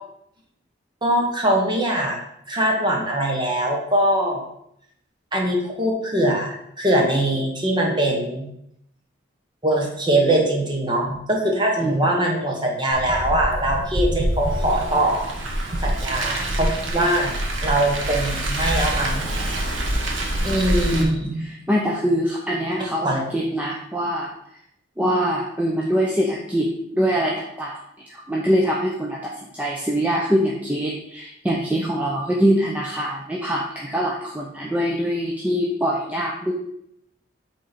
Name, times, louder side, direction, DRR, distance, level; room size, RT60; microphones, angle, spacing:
voice 1, 1.0-2.2 2.5-4.4 5.3-8.5 9.6-15.3 15.8-17.3 17.6-19.3 20.4-21.5 23.0-23.2, right 1 dB, 25° right, 0 dB, 1.2 m, -22 dB
voice 2, 11.8-12.1 20.9-24.3 25.0-27.8 28.1-36.5, equal, 10° right, -3 dB, 0.6 m, -23 dB
Car, 12.9-21.0, right 1 dB, 90° right, 1.2 m, -25 dB
8.3 x 3.8 x 4.2 m, 0.76 s
head